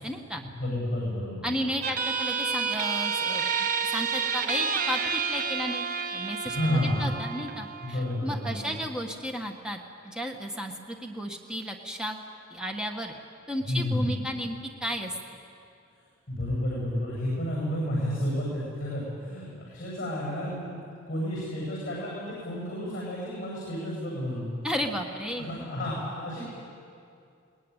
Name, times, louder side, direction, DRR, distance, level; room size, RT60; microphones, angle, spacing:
voice 1, 0.0-0.4 1.4-5.8 6.1-12.2 12.5-13.1 13.5-15.1 24.6-25.7, equal, 5° right, 2 dB, 1.5 m, -33 dB
voice 2, 0.6-1.6 6.4-7.0 7.8-8.7 13.7-14.2 16.3-20.7 21.0-24.5 25.4-26.5, left 1 dB, 45° left, -4 dB, 7.9 m, -31 dB
sound 1, 1.8-8.8, right 5 dB, 45° right, 1.0 m, -30 dB
22.0 x 20.0 x 9.9 m, 2.5 s
head